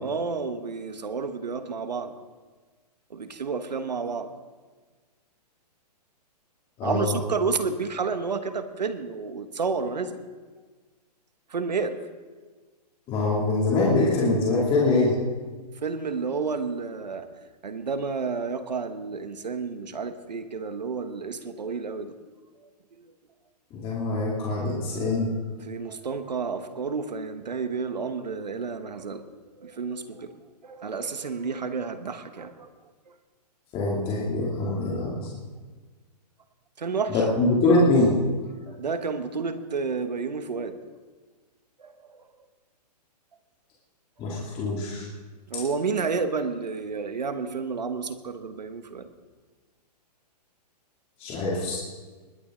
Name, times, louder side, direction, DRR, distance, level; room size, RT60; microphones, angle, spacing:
voice 1, 0.0-2.1 3.1-4.3 6.8-10.2 11.5-12.0 15.8-17.3 17.6-22.1 22.6-22.7 23.0-23.1 25.7-30.3 30.6-32.7 36.8-37.2 38.7-40.8 41.8-42.2 45.5-49.1, right 5 dB, 85° right, 10 dB, 1.2 m, -30 dB
voice 2, 6.8-7.2 13.1-15.2 23.7-25.3 33.7-35.3 37.1-38.2 44.2-45.1 51.2-51.8, left 2 dB, 25° left, -5 dB, 2.6 m, -23 dB
20.5 x 10.0 x 3.8 m, 1.4 s
hypercardioid pair, 125°, 21 cm